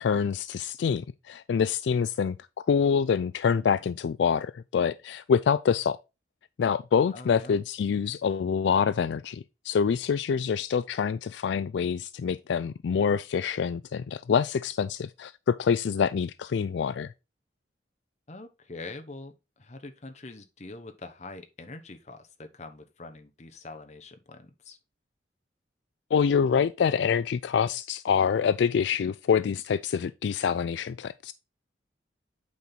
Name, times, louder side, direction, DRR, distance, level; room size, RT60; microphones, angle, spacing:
voice 1, 0.0-2.4 2.7-6.0 6.6-17.1 26.1-31.3, left 6 dB, 75° left, 0.3 m, -26 dB
voice 2, 7.1-7.6 18.3-24.8, left 2 dB, 35° left, 0.9 m, -44 dB
8.4 x 4.5 x 3.9 m
head